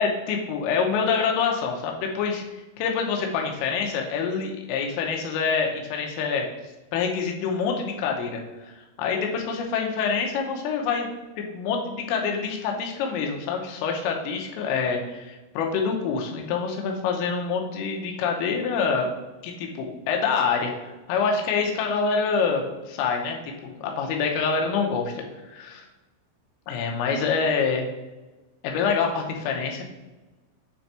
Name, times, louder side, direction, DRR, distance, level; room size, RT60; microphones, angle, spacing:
voice 1, 0.0-2.4 2.8-6.5 6.9-11.1 11.4-19.1 19.4-25.9 26.7-27.9 28.6-29.9, left 5 dB, 85° left, 1 dB, 3.5 m, -26 dB
8.5 x 3.5 x 4.2 m, 1.1 s
omnidirectional pair, 5.7 m